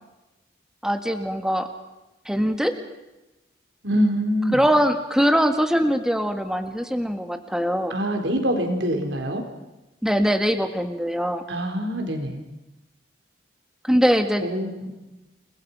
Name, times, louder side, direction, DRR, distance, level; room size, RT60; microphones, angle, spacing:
voice 1, 0.8-1.7 2.3-2.7 4.5-7.9 10.0-11.4 13.8-14.4, equal, 5° right, 6 dB, 1.8 m, -22 dB
voice 2, 3.8-4.6 7.9-9.4 11.5-12.4 14.4-14.9, equal, 75° right, 4 dB, 4.2 m, -24 dB
29.5 x 21.0 x 5.6 m, 1.0 s
head